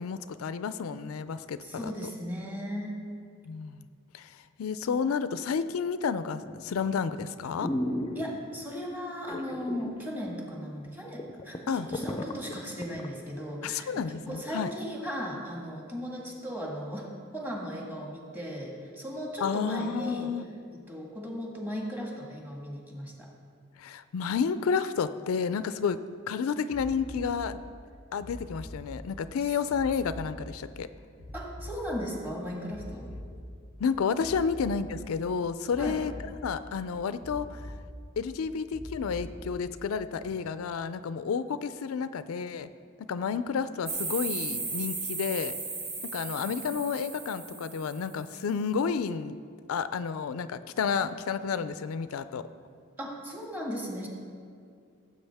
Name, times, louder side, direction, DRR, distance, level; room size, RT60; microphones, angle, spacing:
voice 1, 0.0-1.9 3.5-3.9 4.1-7.7 11.7-11.9 13.6-14.7 19.4-20.4 23.8-26.0 26.3-27.6 28.1-30.9 33.8-36.1 36.4-37.7 38.2-42.7 43.0-45.5 46.0-49.4 49.7-52.5, left 6 dB, 80° left, 13 dB, 0.4 m, -31 dB
voice 2, 1.6-2.9 8.1-20.3 20.7-23.3 31.3-33.1 34.4-34.5 35.8-36.0 53.0-54.1, equal, 10° right, -1 dB, 1.6 m, -37 dB
sound 1, 6.4-6.8 7.2-7.3 7.6-8.6 9.3-10.0 10.3-10.4 10.9-11.0 11.2-13.1 13.5-13.6, left 1 dB, 25° left, 0.5 m, -34 dB
sound 2, 26.7-27.3 28.2-28.8 29.7-30.3 31.2-31.8 32.7-33.3 34.2-34.8 35.7-36.3 37.2-37.8 38.7-39.3 40.2-40.3, left 1 dB, 70° right, 2.6 m, -42 dB
sound 3, 43.9-48.2, right 3 dB, 25° right, 1.2 m, -36 dB
15.5 x 7.7 x 3.5 m, 2.3 s
head